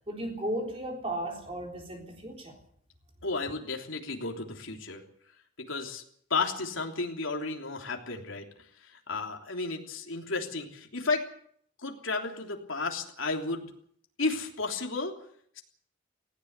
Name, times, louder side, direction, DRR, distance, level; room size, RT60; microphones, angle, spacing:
voice 1, 0.1-2.6, right 1 dB, 30° right, 3.8 m, -35 dB
voice 2, 3.2-5.0 5.6-6.0 6.3-8.4 8.8-11.3 11.8-13.7 14.2-15.1, left 3 dB, 85° left, 3.3 m, -33 dB
19.0 x 16.5 x 8.2 m
head